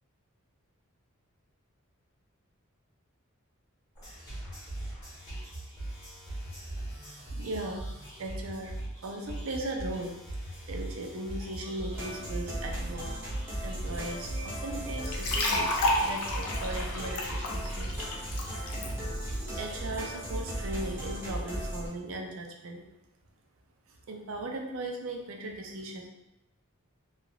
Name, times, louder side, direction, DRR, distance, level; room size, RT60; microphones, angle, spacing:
sound 1, 3.9-21.7, right 1 dB, 15° left, 1.1 m, -40 dB
voice 1, 7.0-7.8 8.2-10.1 10.7-13.1 13.6-17.9 19.6-22.8 24.1-26.1, right 1 dB, 65° right, 2 dB, 0.4 m, -38 dB
sound 2, 11.9-21.9, right 1 dB, 10° right, 0.8 m, -37 dB
sound 3, 15.0-18.9, left 1 dB, 85° left, 0.5 m, -30 dB
3.2 x 2.4 x 2.3 m, 0.90 s
head